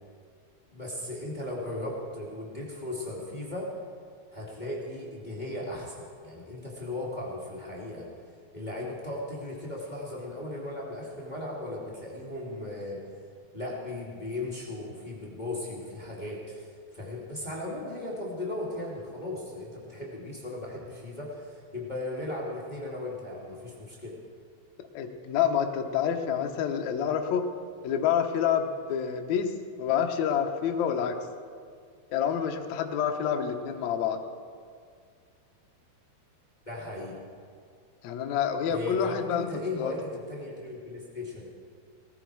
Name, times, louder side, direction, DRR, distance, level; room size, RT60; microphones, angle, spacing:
voice 1, 0.7-3.7 4.3-8.1 8.5-13.0 13.5-24.1 36.6-37.2 38.7-41.5, left 2 dB, 15° left, -4 dB, 1.4 m, -37 dB
voice 2, 24.9-27.4 27.8-29.5 29.8-31.2 32.1-34.2 38.0-39.4 39.8-39.9, left 8 dB, 85° left, 4 dB, 1.6 m, -27 dB
19.0 x 14.5 x 4.7 m, 2.1 s
omnidirectional pair, 4.9 m